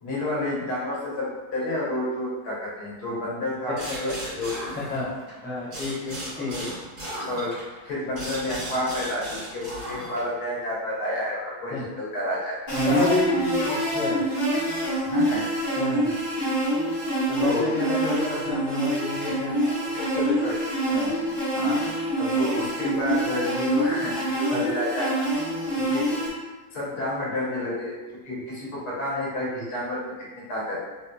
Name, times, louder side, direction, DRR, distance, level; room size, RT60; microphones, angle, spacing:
voice 1, 0.0-4.5 6.3-6.6 7.3-7.5 7.8-12.6 15.1-15.5 17.4-17.7 19.1-19.2 21.5-21.8 22.2-25.1 25.8-26.1 26.7-27.9 28.2-30.8, left 1 dB, 80° left, -6 dB, 1.5 m, -30 dB
sound 1, 3.7-5.3 5.7-10.4, right 1 dB, 55° right, 1.6 m, -36 dB
voice 2, 4.7-5.1 5.4-6.7 11.7-11.8 12.8-14.2 15.8-16.1 17.3-21.1 24.5-24.7 28.3-28.4, left 2 dB, 15° left, -8 dB, 0.3 m, -30 dB
sound 2, 12.7-26.3, right 1 dB, 35° left, 1.1 m, -26 dB
3.6 x 2.6 x 2.2 m, 1.2 s
omnidirectional pair, 1.6 m